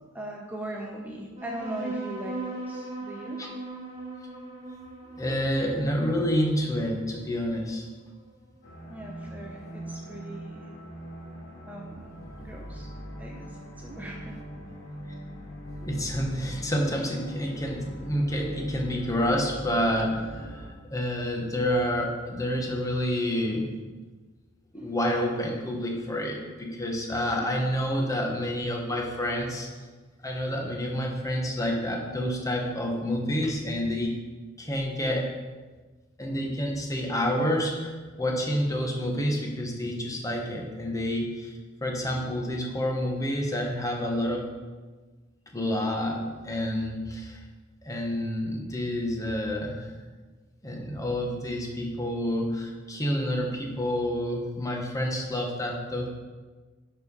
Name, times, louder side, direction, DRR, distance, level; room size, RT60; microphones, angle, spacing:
voice 1, 0.1-3.4 8.9-10.7 11.7-12.1 12.4-12.9 13.2-13.4 13.8-14.4 24.8-24.9 27.4-27.7, right 1 dB, 10° right, -1 dB, 0.8 m, -39 dB
sound 1, 1.3-8.3, right 2 dB, 30° right, 1.8 m, -39 dB
voice 2, 5.1-7.9 15.8-23.7 24.7-29.8 30.2-34.2 34.6-35.3 36.2-44.5 45.5-47.4 47.8-49.9 50.6-56.1, equal, 15° left, 0 dB, 1.3 m, -28 dB
sound 2, 8.6-20.7, equal, 60° left, 2.2 m, -41 dB
11.0 x 4.9 x 5.5 m, 1.3 s
head